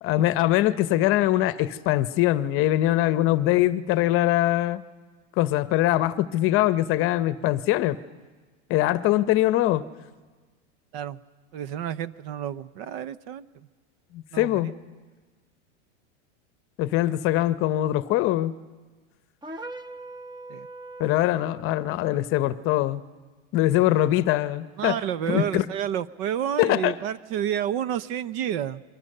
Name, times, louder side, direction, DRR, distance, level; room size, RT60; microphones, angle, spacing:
voice 1, 0.0-4.8 5.4-8.0 8.7-9.8 14.1-14.7 16.8-18.5 21.0-23.0 23.5-25.0 25.3-25.6 26.6-26.9, left 15 dB, 35° left, 15 dB, 0.9 m, -22 dB
voice 2, 11.5-13.5 14.3-14.7 20.5-20.7 24.8-28.8, right 10 dB, 55° right, 17 dB, 0.9 m, -30 dB
sound 1, 19.4-21.6, right 2 dB, 10° right, 0.9 m, -40 dB
28.5 x 23.5 x 6.7 m, 1.3 s
supercardioid pair, 155°, 37 cm